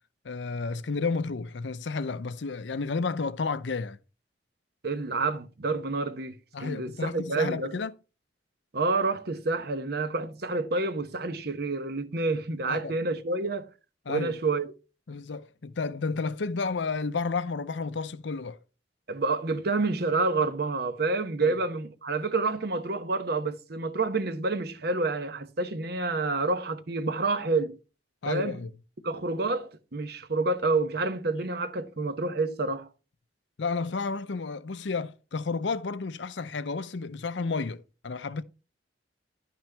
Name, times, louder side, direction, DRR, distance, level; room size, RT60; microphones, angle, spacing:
voice 1, 0.2-4.0 6.5-7.9 12.7-12.9 14.1-14.4 15.1-18.6 21.4-21.5 28.2-28.7 33.6-38.4, left 4 dB, 85° left, 0.6 m, -31 dB
voice 2, 4.8-7.8 8.7-13.7 14.1-14.7 19.1-27.8 28.2-28.6 29.0-32.9, right 3 dB, 60° right, 0.9 m, -28 dB
11.0 x 6.0 x 3.3 m
head